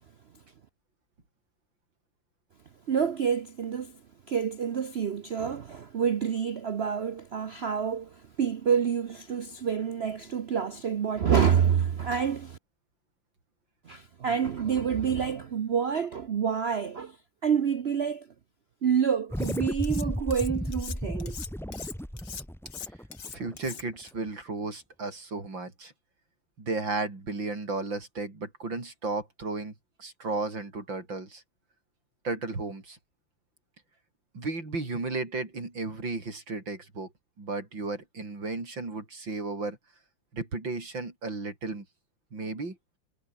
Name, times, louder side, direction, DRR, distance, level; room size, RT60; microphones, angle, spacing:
voice 1, 2.9-4.0 4.3-12.6 13.9-17.2 17.4-18.3 18.8-21.5, right 7 dB, 55° right, 0.7 m, -28 dB
sound 1, 19.3-24.0, equal, ahead, 1.6 m, -34 dB
Cutlery silverware, 19.4-20.0 20.3-24.1, left 7 dB, 65° left, 2.4 m, -41 dB
voice 2, 23.3-25.9 26.6-29.7 30.0-31.4 32.2-33.0 34.3-37.1 37.4-39.8 40.3-41.9 42.3-42.8, right 3 dB, 80° right, 6.1 m, -34 dB
omnidirectional pair, 2.0 m